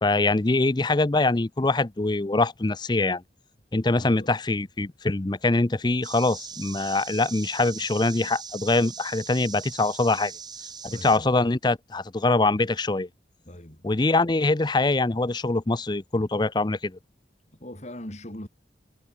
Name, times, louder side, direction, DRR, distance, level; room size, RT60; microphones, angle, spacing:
voice 1, 0.0-3.2 3.7-10.3 10.8-13.1 13.8-17.0, left 2 dB, 25° left, 0.6 m, -23 dB
voice 2, 3.9-4.3 10.9-11.3 13.5-13.8 17.6-18.5, left 1 dB, 40° left, 4.1 m, -40 dB
sound 1, 6.0-11.2, right 6 dB, 25° right, 6.9 m, -40 dB
head